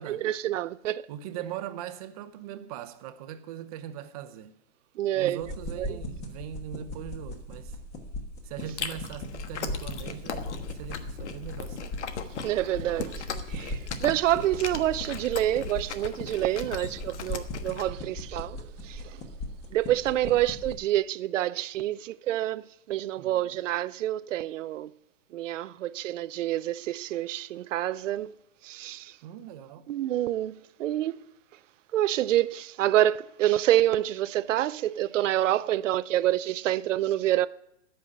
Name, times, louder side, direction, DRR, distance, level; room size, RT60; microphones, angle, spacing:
voice 1, 0.1-1.1 5.0-5.4 5.8-6.0 12.4-19.2 19.7-24.9 25.3-28.3 28.6-29.2 29.9-31.1 31.9-37.5, right 13 dB, 90° right, 0.6 m, -27 dB
voice 2, 1.1-4.5 5.1-7.8 8.4-12.0 23.2-23.6 29.2-29.8, right 10 dB, 30° right, 0.8 m, -40 dB
sound 1, 5.4-20.8, left 1 dB, 20° left, 1.3 m, -39 dB
Chewing mastication, 8.6-17.8, left 6 dB, 70° left, 1.4 m, -38 dB
14.5 x 5.6 x 9.6 m
hypercardioid pair, 165°, 36 cm